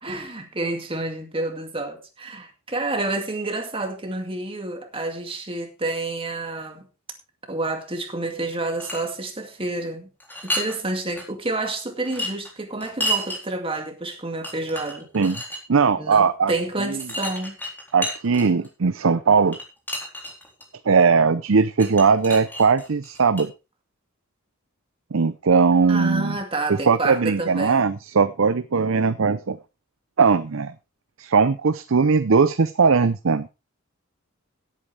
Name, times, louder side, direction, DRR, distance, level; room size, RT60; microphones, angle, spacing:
voice 1, 0.0-6.8 7.5-10.1 10.4-15.1 16.0-17.6 25.9-27.9, right 2 dB, 25° right, 2.3 m, -29 dB
sound 1, 8.5-9.1 10.2-10.8 11.2-11.3 12.1-13.4 14.1-14.2 14.4-15.6 17.0-18.7 19.5-20.6 21.8-23.4, equal, 10° left, 3.8 m, -30 dB
voice 2, 15.7-16.5 16.9-17.0 17.9-19.6 20.9-23.5 25.1-26.4 26.9-29.6 30.2-30.7 31.2-33.5, right 5 dB, 75° right, 0.6 m, -19 dB
17.0 x 8.9 x 3.4 m
head